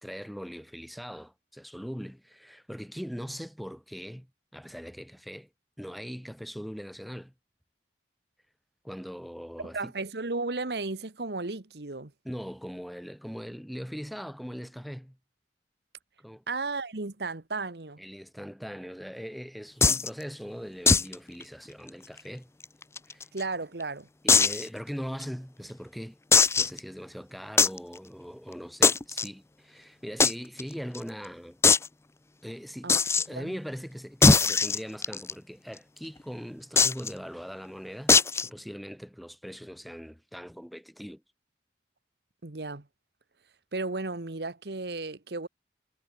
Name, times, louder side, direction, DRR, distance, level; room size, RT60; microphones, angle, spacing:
voice 1, 0.0-4.3 4.5-5.5 5.8-7.3 8.8-9.9 12.2-15.2 16.2-16.4 18.0-22.5 23.1-23.3 24.2-26.2 26.6-31.6 32.4-41.2, equal, ahead, 1.5 m, -40 dB
voice 2, 9.6-12.1 16.5-18.0 23.3-24.1 32.8-33.0 33.3-33.6 42.4-42.9 43.7-45.5, right 3 dB, 65° right, 1.3 m, -34 dB
sound 1, 19.8-20.1 20.9-21.1 21.4-21.5 21.9-22.0 22.6-23.4 24.3-24.6 25.2-25.3 26.3-26.8 27.6-27.8 28.8-29.3 30.2-30.3 30.6-30.7 30.9-31.0 31.6-31.9 32.9-33.2 34.2-35.3 36.8-37.1 38.1-38.5, left 4 dB, 15° left, 0.5 m, -20 dB
head